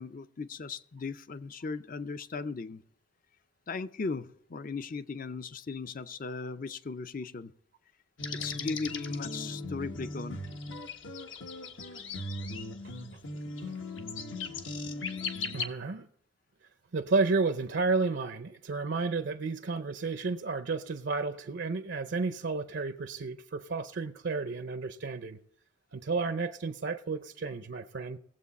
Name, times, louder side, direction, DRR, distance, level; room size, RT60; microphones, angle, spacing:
voice 1, 0.0-2.8 3.7-7.5 8.4-10.4, left 4 dB, 40° left, 0.5 m, -37 dB
sound 1, 8.2-15.7, left 3 dB, 70° left, 1.2 m, -38 dB
voice 2, 13.3-13.7 15.5-16.1 16.9-25.4 25.9-28.2, right 4 dB, 60° right, 0.6 m, -32 dB
19.0 x 7.8 x 4.1 m
head